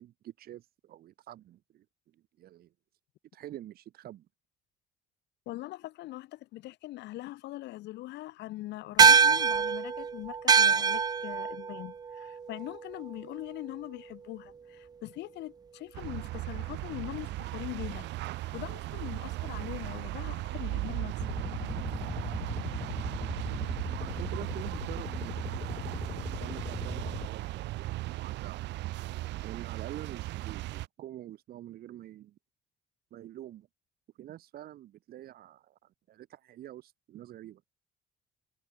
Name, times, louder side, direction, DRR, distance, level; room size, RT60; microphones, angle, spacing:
voice 1, 0.0-1.8 2.4-2.7 3.3-4.3 23.5-25.8 26.4-28.6 29.4-32.4 33.1-33.7 34.2-35.8 36.1-37.6, right 13 dB, 60° right, 1.8 m, -46 dB
voice 2, 5.5-18.1 18.3-21.2, left 17 dB, 80° left, 1.4 m, -42 dB
sound 1, 9.0-13.7, right 6 dB, 20° right, 0.5 m, -25 dB
sound 2, 15.9-30.9, right 17 dB, 85° right, 1.8 m, -37 dB
sound 3, 21.2-27.3, left 7 dB, 35° left, 1.9 m, -39 dB
cardioid pair, 150°, 18 cm